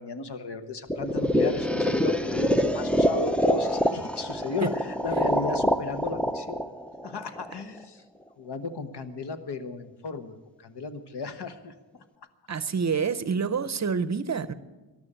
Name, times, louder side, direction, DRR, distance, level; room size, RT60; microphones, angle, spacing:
voice 1, 0.0-6.6 7.0-8.0 8.4-11.7, left 4 dB, 65° left, 1.2 m, -35 dB
sound 1, 0.9-7.8, equal, 5° left, 0.4 m, -26 dB
voice 2, 12.5-14.5, right 6 dB, 40° right, 0.6 m, -27 dB
13.5 x 11.5 x 8.7 m
wide cardioid pair, 130°, 44 cm